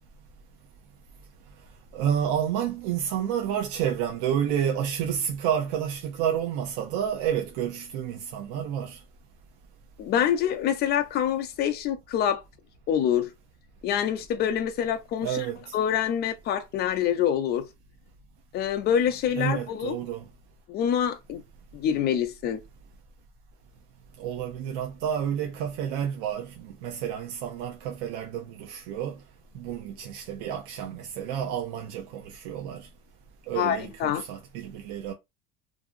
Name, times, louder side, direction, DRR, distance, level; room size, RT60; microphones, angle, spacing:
voice 1, 1.9-9.0 15.2-15.7 19.4-20.2 24.2-29.2 29.5-32.9 33.5-35.1, right 9 dB, 75° right, 0.6 m, -30 dB
voice 2, 10.0-12.4 12.9-13.3 13.8-15.5 15.7-17.7 18.5-19.9 20.7-21.4 21.7-22.6 33.6-34.2, left 9 dB, 30° left, 0.4 m, -26 dB
2.6 x 2.6 x 2.5 m
cardioid pair, 165°, 32 cm